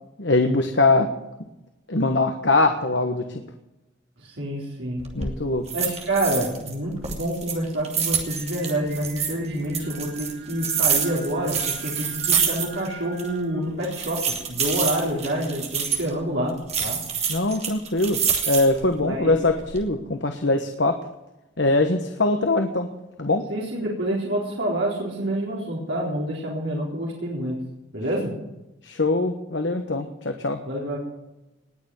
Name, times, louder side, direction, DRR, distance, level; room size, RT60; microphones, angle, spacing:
voice 1, 0.2-1.1 1.9-3.4 5.1-5.6 17.3-18.2 18.5-21.0 21.6-22.9 23.2-23.4 28.8-30.6, left 2 dB, 65° left, 6 dB, 1.3 m, -22 dB
voice 2, 4.2-5.1 5.7-17.0 19.1-19.4 23.5-27.6 27.9-28.3 30.7-31.0, right 1 dB, 70° right, -4 dB, 4.0 m, -27 dB
sound 1, 5.0-5.3 5.7-6.7 7.0-9.3 9.7-12.9 13.2-13.3 13.8-16.1 16.7-18.8 19.3-19.8, right 7 dB, 35° right, 2.9 m, -26 dB
Singing, 8.2-14.8, right 5 dB, 50° right, 3.1 m, -45 dB
20.0 x 6.9 x 9.7 m, 0.96 s
head